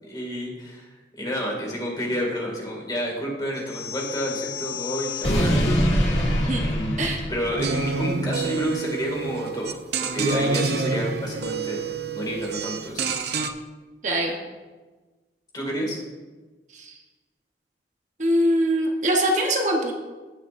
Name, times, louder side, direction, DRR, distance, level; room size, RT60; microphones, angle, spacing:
voice 1, 0.0-5.6 6.1-9.8 10.1-11.8 12.1-13.1 15.5-16.0, equal, 25° left, -1 dB, 2.2 m, -30 dB
sound 1, 3.7-8.0, left 1 dB, 85° left, 2.0 m, -25 dB
sound 2, 7.6-13.5, right 4 dB, 65° right, 0.6 m, -28 dB
voice 2, 14.0-14.4 16.7-16.9 18.2-19.9, right 1 dB, 45° right, 1 dB, 1.0 m, -23 dB
16.5 x 6.4 x 2.6 m, 1.3 s
head